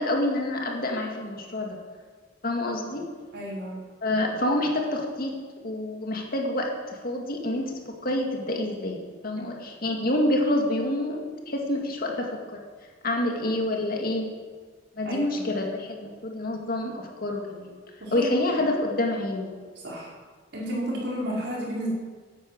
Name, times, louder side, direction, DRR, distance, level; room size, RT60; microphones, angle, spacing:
voice 1, 0.0-1.8 2.4-3.1 4.0-12.6 13.0-14.3 15.0-17.7 18.1-19.5, left 1 dB, 50° left, 1 dB, 2.1 m, -28 dB
voice 2, 3.3-3.7 15.0-15.4 18.0-18.3 19.8-20.1 20.5-21.9, equal, 60° right, -5 dB, 5.1 m, -32 dB
11.0 x 9.3 x 7.8 m, 1.5 s
head